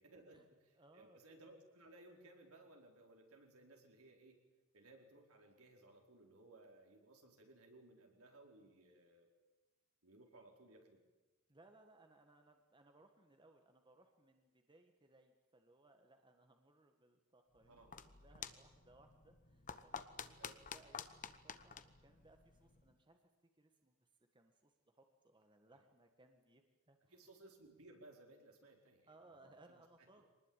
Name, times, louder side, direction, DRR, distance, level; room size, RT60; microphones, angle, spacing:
voice 1, 0.0-4.4 4.7-9.3 10.0-11.0 17.7-18.0 18.3-18.5 20.4-20.6 22.9-23.0 25.7-25.8 27.1-29.8, right 2 dB, 75° right, 1 dB, 4.9 m, -62 dB
voice 2, 0.7-1.2 11.5-23.2 23.6-24.0 24.3-27.3 29.1-30.3, right 2 dB, 20° right, 5 dB, 1.5 m, -67 dB
sound 1, 17.6-22.9, left 6 dB, 35° left, 1.1 m, -51 dB
25.0 x 20.0 x 9.0 m, 1.2 s
head